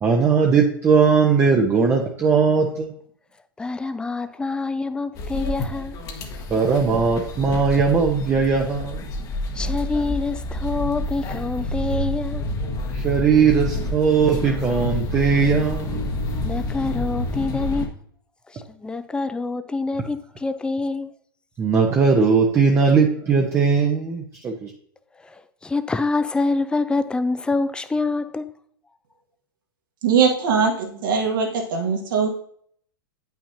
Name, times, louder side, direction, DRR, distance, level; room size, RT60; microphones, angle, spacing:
voice 1, 0.0-2.9 3.8-3.9 6.5-9.1 12.9-16.0 21.6-24.7, right 5 dB, 20° right, 0.9 m, -19 dB
voice 2, 3.6-6.0 9.5-12.5 16.4-17.9 18.5-21.1 25.2-28.5, left 3 dB, 10° left, 0.4 m, -26 dB
sound 1, 5.1-17.9, left 1 dB, 30° left, 1.2 m, -28 dB
voice 3, 30.0-32.4, right 6 dB, 65° right, 1.7 m, -21 dB
8.5 x 5.8 x 2.7 m
hypercardioid pair, 105°, 12 cm